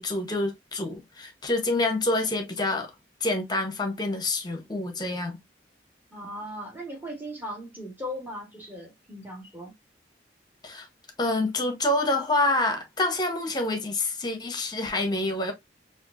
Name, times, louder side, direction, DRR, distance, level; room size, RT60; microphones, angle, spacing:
voice 1, 0.0-2.9 3.2-5.4 10.6-10.9 11.2-15.5, left 2 dB, 20° left, 0.8 m, -27 dB
voice 2, 6.1-9.7, equal, 10° right, 1.3 m, -38 dB
4.3 x 2.5 x 2.5 m
head